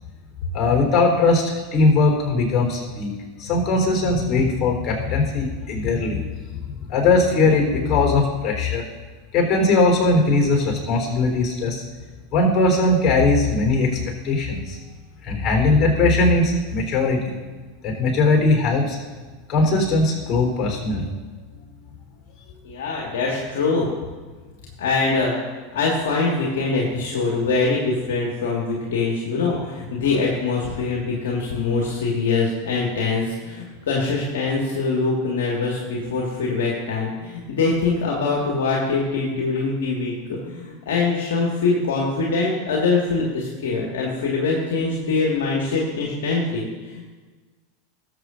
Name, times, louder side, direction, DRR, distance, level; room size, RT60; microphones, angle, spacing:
voice 1, 0.5-3.1 3.4-8.8 9.3-11.8 12.3-13.9 14.2-14.8 15.2-17.3 17.8-19.0 19.5-21.1, left 3 dB, 35° left, 0 dB, 3.7 m, -20 dB
voice 2, 22.6-23.9 24.8-25.3 25.7-47.0, left 4 dB, 65° left, -2 dB, 1.8 m, -23 dB
19.5 x 7.7 x 2.6 m, 1.4 s
figure-of-eight pair, 85°, 0 cm